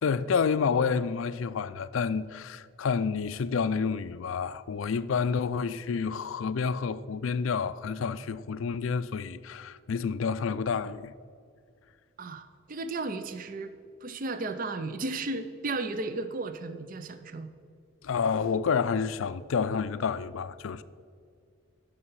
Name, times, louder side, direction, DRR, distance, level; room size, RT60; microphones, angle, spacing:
voice 1, 0.0-11.1 18.0-20.8, left 5 dB, 70° left, 0.4 m, -29 dB
voice 2, 12.2-13.7 14.0-17.5, right 3 dB, 40° right, 0.5 m, -34 dB
12.5 x 5.5 x 5.6 m
head